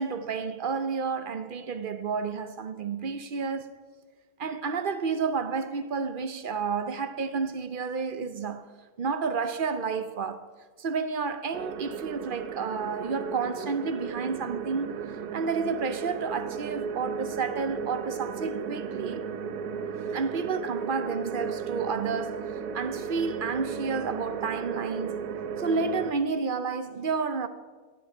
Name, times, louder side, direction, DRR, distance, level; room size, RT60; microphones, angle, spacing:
voice 1, 0.0-3.8 4.4-8.7 9.0-10.4 10.8-15.0 15.3-19.2 20.1-25.2 25.6-27.5, right 5 dB, 50° right, 0.6 m, -30 dB
sound 1, 11.5-26.1, right 6 dB, 75° right, 1.4 m, -35 dB
16.5 x 6.2 x 8.9 m
omnidirectional pair, 1.7 m